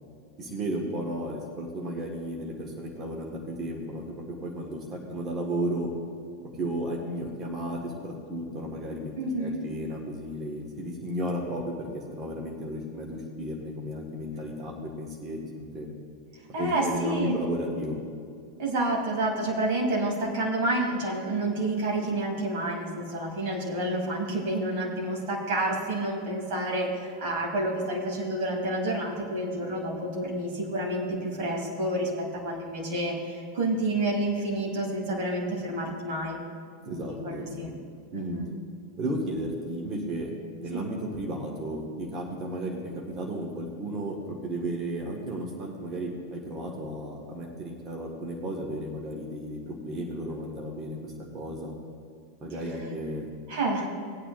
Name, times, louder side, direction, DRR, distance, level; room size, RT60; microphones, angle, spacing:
voice 1, 0.4-5.9 6.5-15.9 16.6-18.0 36.8-37.5 38.1-38.4 39.0-51.7 52.4-53.3, right 1 dB, 30° right, 0 dB, 1.6 m, -34 dB
voice 2, 9.2-9.6 16.5-17.4 18.6-36.4 36.8-37.7 38.1-38.5 40.7-40.9 53.5-53.9, right 1 dB, 45° right, -2 dB, 3.0 m, -29 dB
19.0 x 8.9 x 2.5 m, 2.4 s
figure-of-eight pair, 90°, 0 cm